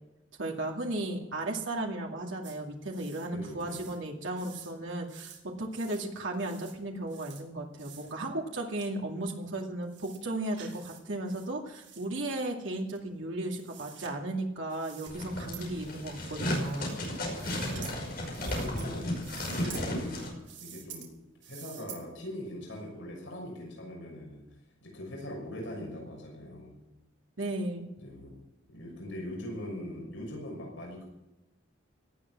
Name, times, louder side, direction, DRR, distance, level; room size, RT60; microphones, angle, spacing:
voice 1, 0.4-5.3 5.6-17.0 27.4-27.9, right 2 dB, 85° right, 0 dB, 2.4 m, -35 dB
sound 1, 2.4-2.6 2.9-3.3 3.6-4.0 4.4-4.7 5.0-5.4 5.7-6.0 6.3-6.7 7.1-7.4 7.8-8.1 8.8-8.9 9.3-9.4 9.8-10.2 10.5-11.0 11.3-12.1 12.9-14.1 14.7-15.1 15.5-15.6 16.2-17.1 17.3-18.0 18.3-18.9 19.2-19.8 20.4-21.1 21.4-22.0, right 9 dB, 65° right, 3.7 m, -49 dB
voice 2, 3.3-3.8 18.4-20.3 20.6-21.1 21.5-24.4 24.8-26.8 28.0-28.4 28.7-31.0, left 1 dB, 80° left, -2 dB, 6.3 m, -41 dB
sound 2, 15.1-20.3, left 1 dB, 50° left, 5.5 m, -34 dB
18.0 x 12.5 x 6.1 m, 0.96 s
head